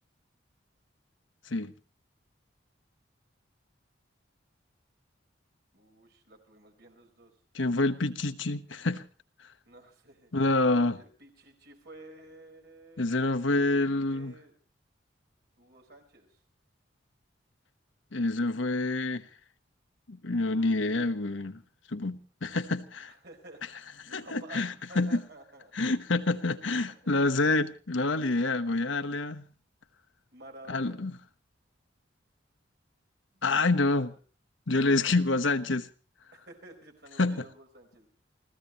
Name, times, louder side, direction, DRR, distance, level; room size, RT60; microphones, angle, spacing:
voice 1, 5.7-7.3 9.6-10.3 10.9-13.0 13.9-14.5 15.6-16.4 20.3-20.8 23.1-24.6 24.9-25.7 26.9-27.1 30.3-31.0 33.3-34.2 34.9-35.2 36.3-38.1, right 1 dB, 55° right, 4.7 m, -52 dB
voice 2, 7.5-9.0 10.3-11.0 13.0-14.3 18.1-19.3 20.1-21.6 21.9-23.1 24.1-25.2 25.7-29.4 30.7-31.1 33.4-34.1 34.7-35.9 37.2-37.4, left 2 dB, 80° left, 1.1 m, -27 dB
29.5 x 15.5 x 3.0 m
head